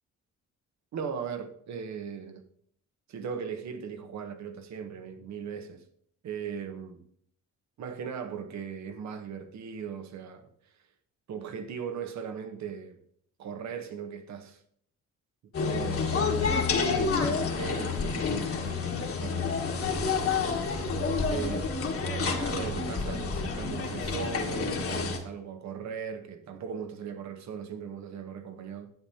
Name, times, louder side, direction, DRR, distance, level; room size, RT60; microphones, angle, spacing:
voice 1, 0.9-2.4 3.1-5.8 6.2-7.0 7.8-10.5 11.3-13.0 13.4-14.6 15.6-19.6 21.3-28.9, right 7 dB, 70° right, 1.1 m, -38 dB
sound 1, 15.5-25.2, left 4 dB, 50° left, 1.6 m, -29 dB
11.0 x 8.2 x 2.8 m
cardioid pair, 110°, 29 cm